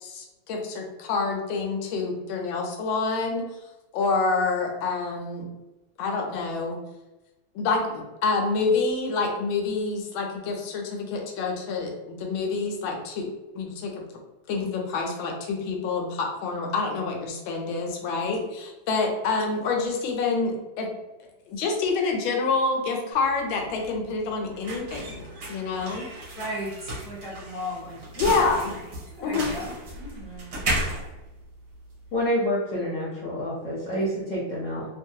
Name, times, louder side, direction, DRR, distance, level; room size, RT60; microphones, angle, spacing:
voice 1, 0.0-3.4 3.9-5.5 6.0-6.8 7.5-13.3 13.5-14.0 14.5-20.9 21.5-26.1 28.2-28.7 29.2-29.5, left 4 dB, 85° left, 1 dB, 1.4 m, -27 dB
sound 1, 23.1-32.2, right 1 dB, 55° right, 1.0 m, -34 dB
voice 2, 25.3-25.8 26.3-28.8 29.1-31.0, equal, 30° left, -10 dB, 0.6 m, -38 dB
voice 3, 32.1-34.9, equal, 55° left, -6 dB, 0.9 m, -27 dB
3.2 x 2.2 x 2.7 m, 1.1 s
omnidirectional pair, 2.1 m